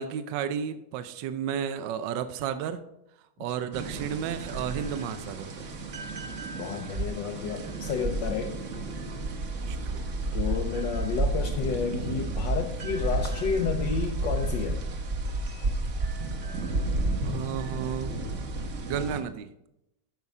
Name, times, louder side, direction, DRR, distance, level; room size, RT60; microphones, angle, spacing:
voice 1, 0.0-2.8 3.4-5.7 9.7-10.0 17.2-18.1 18.8-19.5, right 8 dB, 75° right, 11 dB, 1.2 m, -32 dB
sound 1, 3.7-19.2, right 2 dB, 45° right, 1.3 m, -31 dB
voice 2, 6.6-8.6 10.3-14.8, left 7 dB, 70° left, 3 dB, 1.3 m, -31 dB
12.5 x 5.5 x 4.8 m, 0.86 s
omnidirectional pair, 2.1 m